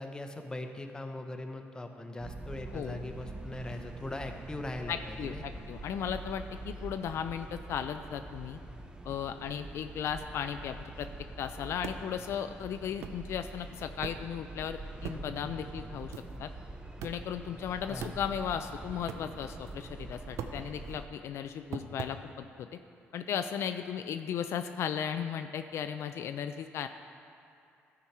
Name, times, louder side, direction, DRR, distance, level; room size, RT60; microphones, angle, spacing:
voice 1, 0.0-5.6 17.9-18.2, left 2 dB, 15° left, 5 dB, 0.8 m, -40 dB
sound 1, 2.2-21.1, right 2 dB, 15° right, 0.7 m, -45 dB
voice 2, 4.9-8.6 9.0-11.1 11.4-16.1 16.4-16.5 17.0-22.8 23.1-26.9, left 8 dB, 70° left, 8 dB, 0.3 m, -36 dB
sound 2, 11.8-12.0 12.6-12.7 13.0-13.2 14.0-14.3 15.0-15.3 15.6-15.7 16.1-16.4 17.0-17.3 18.0-18.6 19.1-19.2 19.7-19.9 20.3-21.1 21.7-22.2, right 7 dB, 75° right, 0.5 m, -41 dB
13.5 x 4.7 x 4.3 m, 2.5 s
cardioid pair, 80°, 5 cm